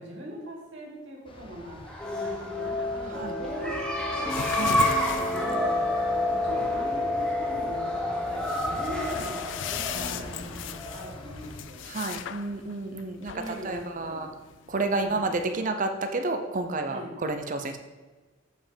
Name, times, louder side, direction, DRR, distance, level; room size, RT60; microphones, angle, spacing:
voice 1, 0.0-4.4 5.0-5.8 6.3-12.0 13.3-14.3 14.9-15.3 16.9-17.2, equal, 65° right, -3 dB, 2.2 m, -41 dB
sound 1, 1.3-11.6, left 1 dB, 25° left, 0.7 m, -45 dB
sound 2, 1.8-11.3, left 1 dB, 5° left, 1.1 m, -29 dB
sound 3, 4.3-15.5, left 8 dB, 70° left, 0.4 m, -39 dB
voice 2, 4.5-4.8 9.9-10.9 11.9-14.3 14.7-17.8, right 2 dB, 45° right, 6 dB, 0.7 m, -31 dB
7.5 x 5.1 x 5.1 m, 1.3 s
head